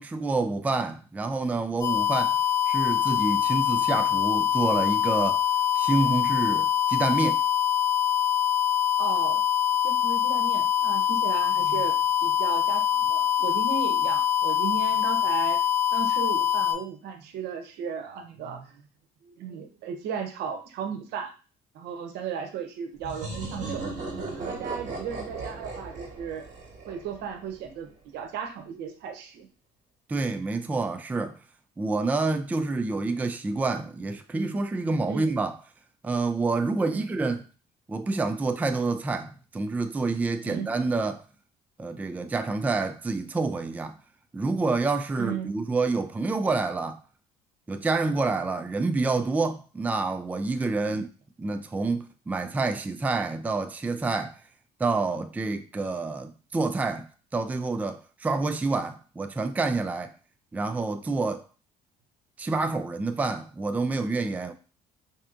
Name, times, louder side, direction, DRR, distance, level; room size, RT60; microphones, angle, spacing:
voice 1, 0.0-2.4 2.7-5.4 5.8-7.4 30.1-31.4 31.8-35.6 36.0-37.4 37.9-41.2 41.8-44.0 44.3-47.0 47.7-51.1 51.4-54.4 54.8-57.1 57.3-60.1 60.5-61.4 62.4-64.5, right 3 dB, 10° right, 0.3 m, -28 dB
sound 1, 1.8-16.7, left 11 dB, 25° left, 2.0 m, -24 dB
voice 2, 9.0-9.4 9.8-12.0 12.2-15.6 15.9-18.8 19.2-21.3 21.7-26.4 26.9-29.5 35.1-35.3 36.9-37.1 40.4-40.7 45.2-45.6 50.9-51.0, right 7 dB, 85° right, 0.7 m, -35 dB
sound 2, 23.0-27.6, right 3 dB, 50° right, 1.4 m, -36 dB
4.3 x 2.8 x 2.4 m
cardioid pair, 110°, 17 cm